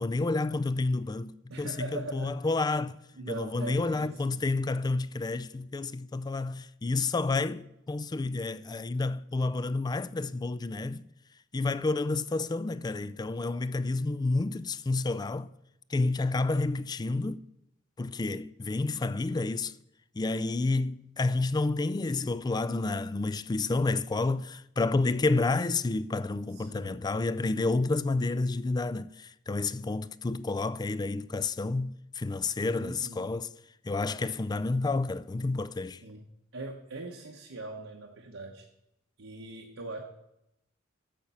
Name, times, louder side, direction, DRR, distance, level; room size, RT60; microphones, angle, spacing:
voice 1, 0.0-3.0 3.3-11.0 11.5-15.5 15.9-17.4 18.0-19.7 20.2-33.5 33.8-36.0, left 3 dB, 20° left, 0.3 m, -30 dB
voice 2, 1.5-2.4 3.1-4.5 26.5-27.0 32.6-33.3 36.0-36.3 36.5-38.7 39.2-40.0, right 2 dB, 85° right, 1.1 m, -41 dB
12.5 x 7.3 x 5.5 m
head